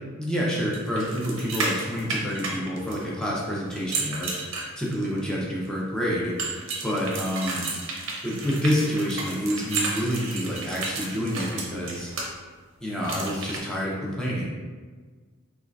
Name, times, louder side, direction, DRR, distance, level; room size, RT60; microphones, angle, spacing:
voice 1, 0.2-4.3 4.8-6.3 6.8-7.7 8.2-12.1 12.8-14.5, equal, 5° left, -5 dB, 0.5 m, -28 dB
sound 1, 0.7-3.2 3.7-5.2 6.4-12.3 13.0-13.6, right 3 dB, 60° right, 0.5 m, -32 dB
3.6 x 2.3 x 2.3 m, 1.5 s
head